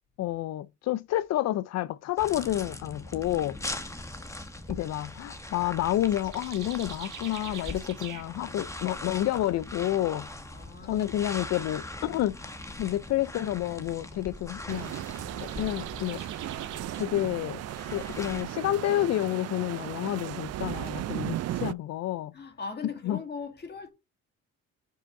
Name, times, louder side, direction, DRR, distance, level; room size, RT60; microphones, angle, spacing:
voice 1, 0.2-3.6 4.7-10.3 10.8-12.4 12.8-14.9 15.4-16.2 17.0-17.6 17.9-22.3 23.0-23.2, left 14 dB, 60° left, 0.4 m, -29 dB
sound 1, 2.2-18.4, left 2 dB, 10° left, 1.1 m, -41 dB
sound 2, 3.6-17.0, right 10 dB, 80° right, 1.6 m, -50 dB
voice 2, 10.5-11.1 22.3-23.9, left 5 dB, 35° left, 2.0 m, -39 dB
sound 3, 14.7-21.7, right 13 dB, 55° right, 0.4 m, -36 dB
6.1 x 5.5 x 3.6 m
cardioid pair, 90°, 30 cm